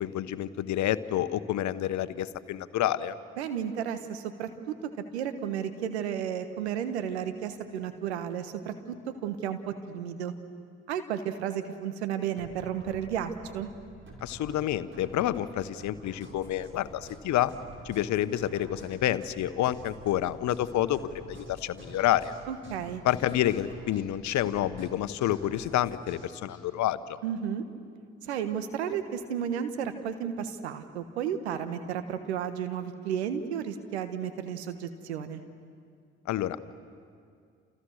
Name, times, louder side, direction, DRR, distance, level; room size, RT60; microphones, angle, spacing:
voice 1, 0.0-3.1 14.2-17.5 17.8-22.3 23.0-27.2 36.3-36.6, left 12 dB, 60° left, 14 dB, 1.1 m, -29 dB
voice 2, 3.4-4.8 5.1-9.0 9.2-10.3 10.9-13.7 22.5-23.0 27.2-27.6 28.2-35.4, right 8 dB, 85° right, 9 dB, 1.5 m, -33 dB
sound 1, 12.4-26.6, right 1 dB, 35° right, 5.7 m, -48 dB
29.0 x 29.0 x 6.6 m, 2.2 s
hypercardioid pair, 50°, 32 cm